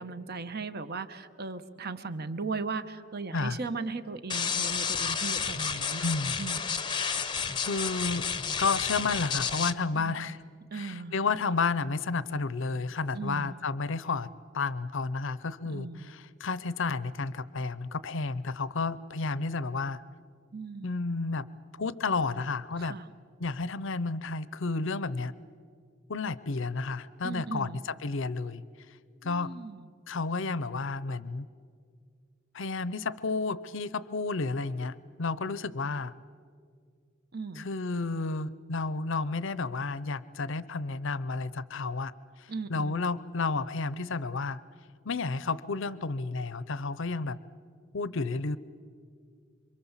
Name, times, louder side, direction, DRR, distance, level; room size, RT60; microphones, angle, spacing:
voice 1, 0.0-6.0 6.4-6.6 9.9-10.4 10.7-11.1 13.1-13.5 15.6-16.1 20.5-21.0 22.8-23.1 27.2-27.8 29.2-29.9 37.3-37.7 42.5-43.0, right 4 dB, 50° right, 11 dB, 1.0 m, -37 dB
sound 1, 4.3-9.7, left 6 dB, 25° left, 0.7 m, -31 dB
voice 2, 6.0-6.3 7.1-7.2 7.7-8.3 8.6-10.4 10.7-14.3 14.5-20.0 20.8-21.5 21.8-23.0 23.4-25.3 26.1-28.6 29.2-29.6 30.1-31.5 32.5-36.1 37.6-42.1 42.4-44.6 45.0-47.4 47.9-48.6, left 3 dB, 70° left, 17 dB, 0.7 m, -31 dB
27.0 x 24.5 x 7.3 m, 2.2 s
head